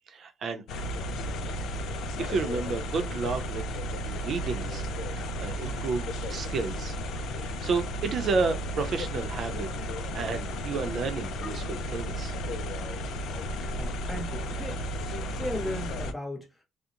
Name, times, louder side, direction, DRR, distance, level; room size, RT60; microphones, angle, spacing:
voice 1, 0.1-0.8 2.2-3.6 4.0-4.8 5.2-7.0 7.4-9.7 10.1-12.3, right 4 dB, 60° right, 0.6 m, -31 dB
sound 1, 0.7-16.1, equal, 80° left, 0.3 m, -33 dB
voice 2, 13.7-14.8 15.3-16.6, left 1 dB, 15° left, 1.0 m, -36 dB
2.5 x 2.1 x 2.7 m
cardioid pair, 90°, 0 cm